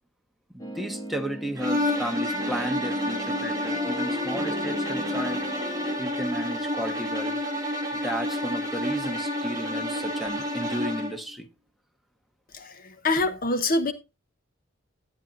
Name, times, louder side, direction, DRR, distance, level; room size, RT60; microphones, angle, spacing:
voice 1, 0.5-5.4 6.0-7.4 7.9-11.5, equal, ahead, 1.1 m, -33 dB
sound 1, 0.6-6.0, right 1 dB, 20° left, 1.6 m, -38 dB
sound 2, 1.6-11.2, left 1 dB, 20° right, 2.0 m, -29 dB
voice 2, 12.5-13.9, left 2 dB, 45° left, 0.8 m, -25 dB
11.5 x 8.8 x 2.5 m
head